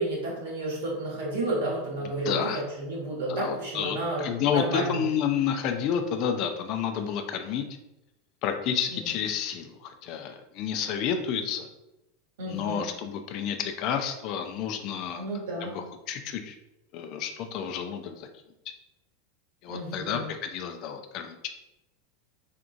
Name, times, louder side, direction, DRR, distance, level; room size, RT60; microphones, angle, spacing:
voice 1, 0.0-5.0 8.9-9.0 12.4-12.9 15.2-15.7 19.7-20.3, right 2 dB, 75° right, -3 dB, 1.4 m, -31 dB
voice 2, 2.2-2.6 3.3-7.6 8.4-11.7 12.5-15.3 15.6-16.6 16.9-18.3 19.6-21.5, left 8 dB, 55° left, 6 dB, 0.4 m, -30 dB
3.7 x 3.5 x 2.4 m, 0.93 s
hypercardioid pair, 95°, 0 cm